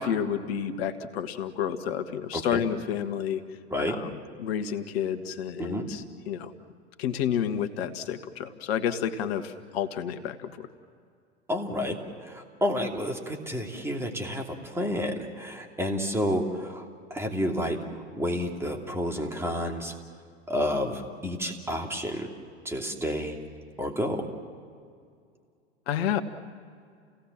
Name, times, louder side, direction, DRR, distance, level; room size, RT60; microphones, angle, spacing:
voice 1, 0.0-3.4 3.8-6.5 7.0-10.7 25.9-26.2, left 8 dB, 60° left, 9 dB, 1.7 m, -30 dB
voice 2, 2.3-2.6 3.7-4.0 5.6-5.9 11.5-19.9 20.5-22.3 22.6-23.4 23.8-24.3, equal, 5° right, 2 dB, 2.8 m, -30 dB
29.5 x 17.5 x 7.4 m, 2.2 s
hypercardioid pair, 95°, 34 cm